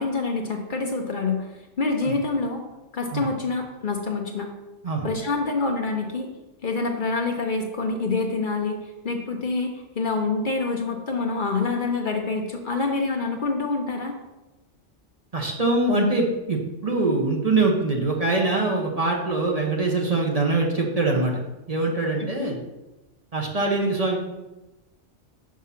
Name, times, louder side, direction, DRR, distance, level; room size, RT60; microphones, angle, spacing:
voice 1, 0.0-1.5 1.8-2.6 2.9-4.5 5.0-6.3 6.6-14.2 22.4-22.5, left 3 dB, 50° left, 3 dB, 0.9 m, -26 dB
voice 2, 15.3-21.4 21.7-22.6 23.3-24.2, right 2 dB, 35° right, 0 dB, 1.0 m, -23 dB
6.1 x 4.8 x 5.7 m, 1.0 s
omnidirectional pair, 1.2 m